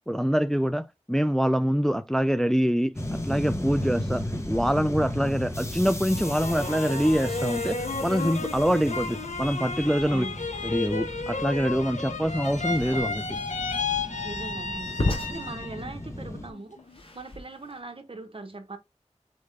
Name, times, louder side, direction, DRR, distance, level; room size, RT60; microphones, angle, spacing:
voice 1, 0.1-10.3 10.6-13.4, equal, 5° left, 0.3 m, -25 dB
sound 1, 3.0-16.5, left 1 dB, 25° left, 1.0 m, -35 dB
sound 2, 6.1-15.9 16.3-17.0, left 4 dB, 85° left, 0.8 m, -33 dB
sound 3, 12.7-17.8, left 2 dB, 50° left, 1.1 m, -34 dB
voice 2, 14.2-16.8 17.1-18.8, right 2 dB, 50° right, 0.9 m, -40 dB
4.1 x 3.5 x 3.3 m
wide cardioid pair, 55°, 12 cm